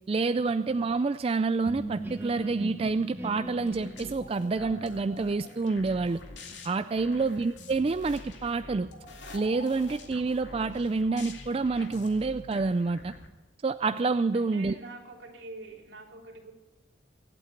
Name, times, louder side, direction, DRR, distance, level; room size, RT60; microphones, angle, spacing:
voice 1, 0.1-6.2 6.6-8.9 9.3-13.1 13.6-14.8, right 3 dB, 30° right, 11 dB, 0.3 m, -28 dB
sound 1, 1.6-7.3, right 1 dB, 10° right, 1.6 m, -42 dB
sound 2, 3.7-13.3, left 2 dB, 75° left, 2.2 m, -46 dB
voice 2, 14.3-16.5, right 2 dB, 70° right, -1 dB, 3.7 m, -45 dB
24.0 x 8.7 x 4.6 m, 1.3 s
head